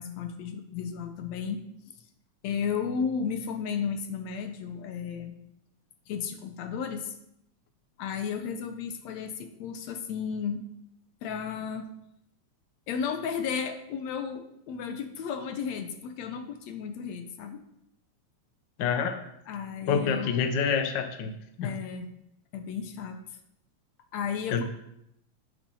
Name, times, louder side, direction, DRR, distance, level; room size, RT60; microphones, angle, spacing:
voice 1, 0.0-1.6 2.4-5.4 6.1-7.2 8.0-10.6 11.2-12.0 12.9-17.6 19.5-20.4 21.6-22.1 22.5-23.2 24.1-24.6, left 6 dB, 70° left, 7 dB, 2.1 m, -33 dB
voice 2, 18.8-19.2 19.9-21.3 21.6-21.7 24.5-24.6, left 6 dB, 55° left, 6 dB, 1.3 m, -27 dB
10.0 x 9.2 x 5.5 m, 0.78 s
omnidirectional pair, 3.3 m